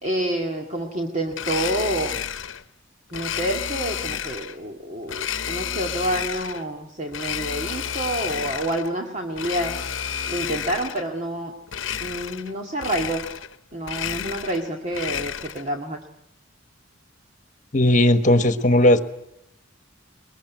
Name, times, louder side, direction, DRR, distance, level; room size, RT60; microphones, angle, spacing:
voice 1, 0.0-2.1 3.1-9.8 10.3-11.5 12.0-13.2 13.7-16.0, right 1 dB, 35° right, 1 dB, 2.1 m, -28 dB
Domestic sounds home sounds, 1.3-2.6 3.1-4.6 5.1-6.7 7.1-8.9 9.3-11.1 11.7-12.5 12.8-13.6 13.8-15.7, left 8 dB, 70° left, 1.0 m, -31 dB
voice 2, 17.7-19.0, left 1 dB, 40° left, 9 dB, 1.5 m, -16 dB
22.0 x 21.5 x 9.4 m, 0.78 s
head